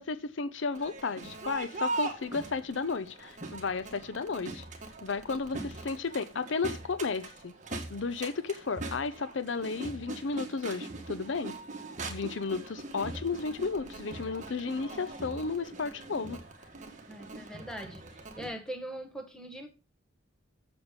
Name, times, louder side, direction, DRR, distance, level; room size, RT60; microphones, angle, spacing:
voice 1, 0.0-4.7 5.0-7.5 7.9-11.6 12.1-16.4, left 4 dB, 75° left, 0.6 m, -33 dB
Crowd, 0.7-18.5, right 2 dB, 40° right, 1.6 m, -41 dB
voice 2, 17.1-18.0 18.4-19.7, right 1 dB, 5° left, 1.5 m, -41 dB
8.0 x 7.0 x 5.1 m
head